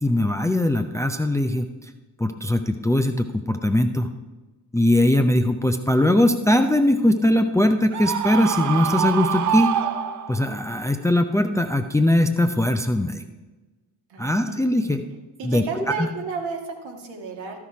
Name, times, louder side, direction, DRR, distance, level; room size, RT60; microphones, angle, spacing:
voice 1, 0.0-1.7 2.2-4.1 4.7-9.7 10.3-13.2 14.2-15.0 15.4-16.1, left 1 dB, 5° left, 7 dB, 0.7 m, -20 dB
Screaming, 7.9-10.6, right 9 dB, 35° right, 0.7 m, -25 dB
voice 2, 14.1-14.9 15.4-17.6, right 4 dB, 65° right, 2 dB, 1.8 m, -33 dB
12.5 x 5.9 x 4.7 m, 1.2 s
hypercardioid pair, 45°, 49 cm